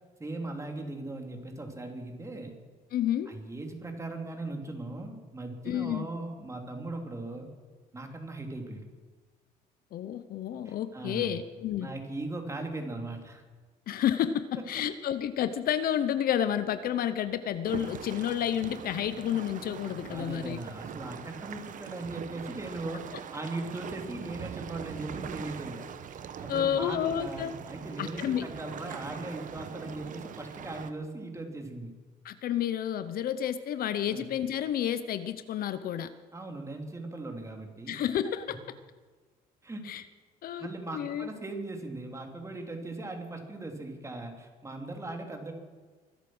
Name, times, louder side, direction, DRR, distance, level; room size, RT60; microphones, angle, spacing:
voice 1, 0.2-2.5 3.3-7.5 7.9-8.9 10.6-11.4 11.8-13.4 20.1-25.9 26.4-31.9 34.1-34.3 36.3-38.0 39.6-39.8 40.6-45.5, right 2 dB, 15° right, 3 dB, 2.9 m, -39 dB
voice 2, 2.9-3.3 5.6-6.1 9.9-11.9 13.9-20.6 26.5-27.5 28.0-28.4 32.2-36.1 37.9-38.6 39.8-40.0 40.4-40.7 40.9-41.3, left 10 dB, 60° left, 12 dB, 0.8 m, -30 dB
sound 1, 17.6-30.9, right 8 dB, 50° right, 1.1 m, -42 dB
24.0 x 8.4 x 6.2 m, 1.4 s
cardioid pair, 110°, 17 cm